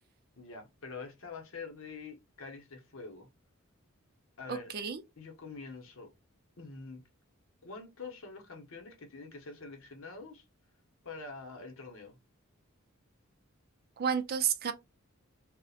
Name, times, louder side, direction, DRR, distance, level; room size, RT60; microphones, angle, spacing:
voice 1, 0.4-3.3 4.4-4.7 5.2-6.1 6.6-7.0 7.6-10.4 11.0-12.2, left 4 dB, 65° left, 0.7 m, -45 dB
voice 2, 4.5-5.0 14.0-14.7, right 7 dB, 45° right, 0.4 m, -31 dB
2.7 x 2.1 x 2.3 m
head